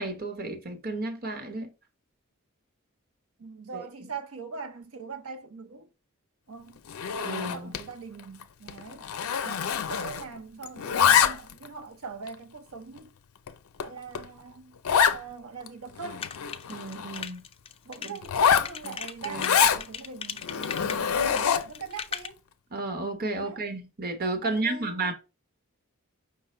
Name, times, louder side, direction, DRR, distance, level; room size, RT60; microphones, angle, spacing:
voice 1, 0.0-1.7 3.7-4.1 7.2-7.7 16.7-17.4 18.0-18.2 18.8-19.6 22.7-25.1, right 2 dB, 45° right, 0.9 m, -33 dB
voice 2, 3.4-5.9 6.5-6.8 7.5-9.1 9.4-13.1 13.8-14.7 15.1-16.2 17.9-22.4 23.3-23.6 24.4-25.1, right 5 dB, 80° right, 0.7 m, -42 dB
Zipper (clothing), 6.9-7.9 8.2-8.4 8.7-10.4 10.6-11.7 12.3-12.4 13.0-13.1 13.5-13.6 13.8-13.9 14.1-14.3 14.8-15.2 15.7-15.8 16.0-17.3 18.2-19.8 20.4-21.8, left 7 dB, 90° left, 0.5 m, -25 dB
sound 1, 16.2-22.3, left 7 dB, 25° left, 0.3 m, -37 dB
5.7 x 2.1 x 4.2 m
head